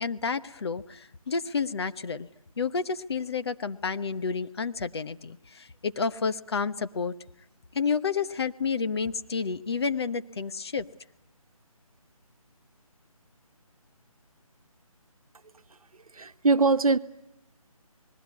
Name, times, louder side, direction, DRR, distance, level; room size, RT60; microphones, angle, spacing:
voice 1, 0.0-2.3 2.6-7.1 7.7-10.8, left 5 dB, 45° left, 11 dB, 1.0 m, -30 dB
voice 2, 16.1-17.0, right 3 dB, 70° right, 11 dB, 1.2 m, -22 dB
29.0 x 20.0 x 9.6 m, 0.86 s
figure-of-eight pair, 160°, 19 cm